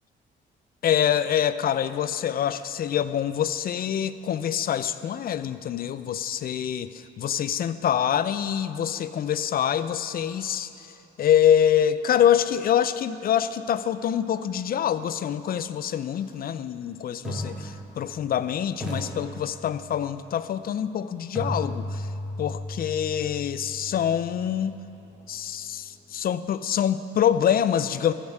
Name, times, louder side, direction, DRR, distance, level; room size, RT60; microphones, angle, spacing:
voice 1, 0.8-10.9 11.2-22.1 22.4-24.7 25.3-28.1, left 9 dB, 50° left, 14 dB, 0.4 m, -25 dB
sound 1, 16.1-16.3 17.2-18.4 18.8-20.0 21.3-25.3, left 1 dB, 5° right, 2.0 m, -35 dB
15.0 x 5.1 x 5.4 m, 2.9 s
cardioid pair, 90°, 20 cm